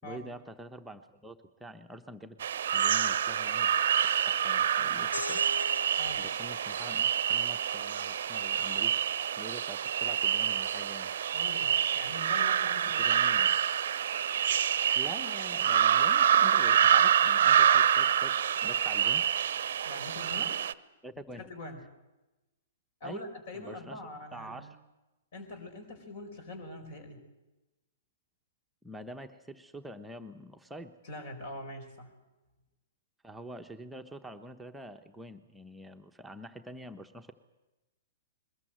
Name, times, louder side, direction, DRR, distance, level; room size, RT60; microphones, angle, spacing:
voice 1, 0.0-2.4 2.7-3.7 4.3-5.4 6.2-9.0 9.4-11.1 12.6-13.6 14.9-19.2 21.0-21.5 23.0-23.3 23.5-24.0 24.3-24.8 28.8-31.0 33.2-37.3, equal, 5° right, 4 dB, 1.0 m, -46 dB
sound 1, 2.4-20.7, right 9 dB, 55° right, 0.8 m, -27 dB
sound 2, 5.1-10.3, left 1 dB, 85° left, 1.1 m, -43 dB
voice 2, 11.3-13.4 19.9-20.6 21.3-21.8 23.0-24.7 25.3-27.2 31.0-32.1, left 2 dB, 50° left, 7 dB, 4.7 m, -43 dB
22.0 x 20.0 x 7.8 m, 1.0 s
figure-of-eight pair, 110°, 0 cm